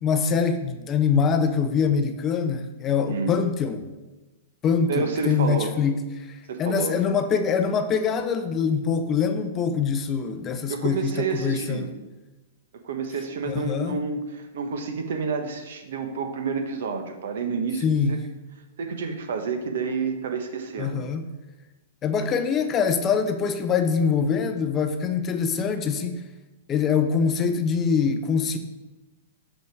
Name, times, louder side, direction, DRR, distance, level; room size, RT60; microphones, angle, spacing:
voice 1, 0.0-3.9 4.6-11.9 13.4-14.0 17.8-18.2 20.8-21.2 22.0-26.1 26.7-28.6, left 6 dB, 20° left, 8 dB, 0.5 m, -24 dB
voice 2, 4.9-5.8 6.5-6.9 10.7-11.9 12.7-18.2 18.8-21.0, right 5 dB, 75° right, 6 dB, 1.1 m, -29 dB
6.6 x 5.4 x 4.6 m, 1.1 s
hypercardioid pair, 155°, 0 cm